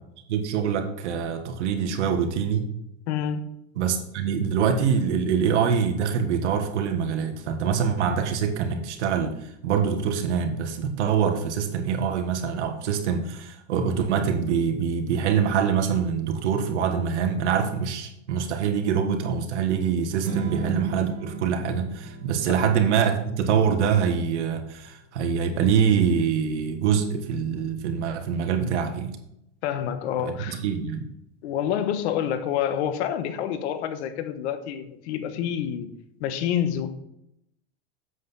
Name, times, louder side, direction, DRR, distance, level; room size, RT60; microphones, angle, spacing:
voice 1, 0.3-2.6 3.8-9.4 9.6-29.2 30.2-31.0, right 7 dB, 85° right, 1.5 m, -24 dB
voice 2, 3.1-3.5 20.3-20.4 22.5-22.6 29.6-30.6 31.4-35.9 36.2-36.9, left 9 dB, 75° left, 1.3 m, -28 dB
Strum, 20.2-26.5, right 4 dB, 60° right, 1.9 m, -38 dB
8.1 x 7.8 x 4.1 m
supercardioid pair, 110°, 34 cm